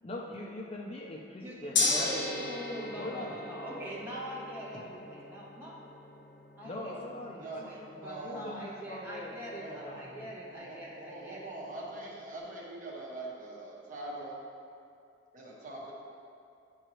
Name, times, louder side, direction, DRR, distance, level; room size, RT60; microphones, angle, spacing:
voice 1, 0.0-2.2 2.8-3.3 6.6-10.3, left 1 dB, 30° left, 0 dB, 0.5 m, -42 dB
voice 2, 1.3-5.8 6.6-6.9 7.2-11.4, equal, 10° right, -7 dB, 1.3 m, -43 dB
Gong, 1.7-12.0, left 3 dB, 65° left, 1.1 m, -38 dB
voice 3, 8.0-8.5 9.6-9.8 10.5-14.4 15.3-15.9, right 2 dB, 40° right, -4 dB, 1.3 m, -43 dB
9.0 x 6.4 x 3.0 m, 2.5 s
head